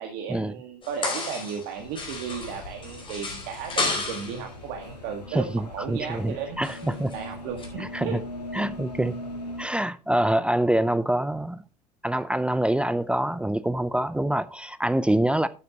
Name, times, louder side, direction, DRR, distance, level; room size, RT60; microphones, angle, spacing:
voice 1, 0.0-6.6 7.1-8.2 8.5-8.6, right 7 dB, 55° right, 1.7 m, -35 dB
sound 1, 0.8-1.7 2.0-4.4 6.6-7.2 7.6-7.7, left 3 dB, 25° left, 4.6 m, -32 dB
sound 2, 1.8-9.6, left 1 dB, 85° left, 1.9 m, -40 dB
voice 2, 5.3-7.1 7.8-8.2 8.5-9.2 9.6-11.6 12.0-15.5, right 1 dB, 5° right, 0.5 m, -25 dB
12.0 x 9.3 x 2.9 m
figure-of-eight pair, 75°, 20 cm